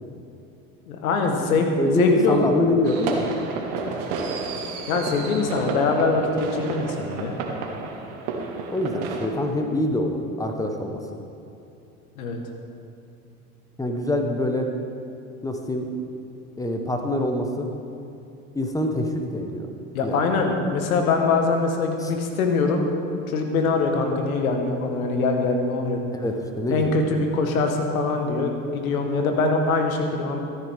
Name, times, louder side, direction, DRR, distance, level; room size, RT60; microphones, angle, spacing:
voice 1, 0.9-2.5 4.9-7.3 12.1-12.4 19.9-22.9 23.3-26.0 26.7-30.4, left 3 dB, 85° left, 3 dB, 1.5 m, -23 dB
voice 2, 1.8-3.3 8.7-11.0 13.8-14.7 15.4-16.0 16.6-17.7 18.5-19.7 20.0-20.2 22.0-22.1 26.1-27.0, left 1 dB, 10° left, 4 dB, 1.3 m, -24 dB
sound 1, 2.8-9.3, right 4 dB, 65° right, 1.6 m, -31 dB
13.5 x 9.8 x 3.7 m, 2.6 s
hypercardioid pair, 80°, 41 cm